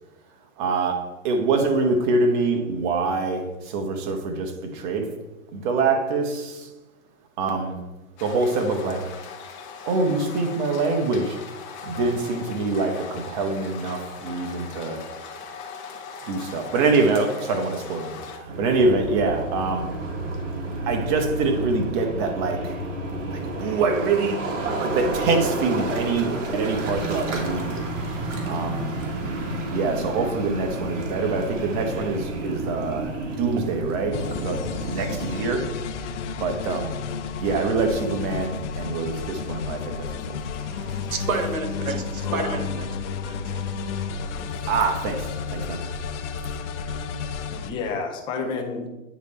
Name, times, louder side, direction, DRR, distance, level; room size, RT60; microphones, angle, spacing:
voice 1, 0.6-5.1 5.5-6.7 7.4-7.8 8.2-9.1 9.9-11.4 11.8-15.1 16.3-20.0 20.9-22.8 23.3-27.8 28.4-28.9 29.7-35.7 36.3-37.0 37.4-40.4 44.7-45.8, right 3 dB, 35° right, 5 dB, 1.1 m, -25 dB
sound 1, 8.2-18.4, left 6 dB, 35° left, 1.1 m, -39 dB
sound 2, 18.5-35.4, right 2 dB, 60° right, 1.7 m, -30 dB
sound 3, 34.1-47.7, left 5 dB, 60° left, 0.8 m, -32 dB
voice 2, 40.6-42.9 43.2-44.0 44.3-44.4, right 3 dB, 80° right, 6 dB, 1.4 m, -31 dB
voice 3, 42.2-42.6 47.4-48.9, left 4 dB, 10° left, 3 dB, 0.5 m, -30 dB
9.3 x 3.3 x 4.2 m, 1.0 s
hypercardioid pair, 140°, 41 cm